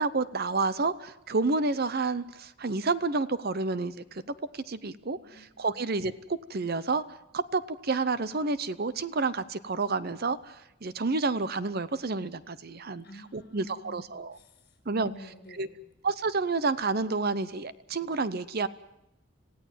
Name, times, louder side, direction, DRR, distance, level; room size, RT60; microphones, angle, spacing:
voice 1, 0.0-4.2 4.5-6.1 6.5-7.0 7.3-13.0 13.3-14.4 14.9-15.1 15.6-15.7 16.0-18.7, right 3 dB, 45° right, 15 dB, 0.7 m, -29 dB
voice 2, 5.2-5.8 13.0-15.9, equal, 45° left, 7 dB, 6.7 m, -51 dB
27.0 x 16.5 x 7.5 m, 0.89 s
head